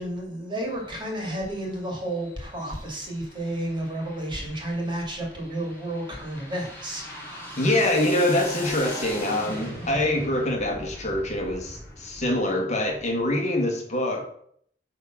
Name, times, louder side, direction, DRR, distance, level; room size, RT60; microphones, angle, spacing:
voice 1, 0.0-7.5, right 1 dB, 25° right, 0 dB, 2.4 m, -31 dB
sound 1, 0.6-12.3, equal, 10° left, 2.4 m, -41 dB
voice 2, 7.6-14.2, left 1 dB, 40° left, 1 dB, 1.7 m, -25 dB
9.4 x 3.8 x 6.1 m, 0.64 s
head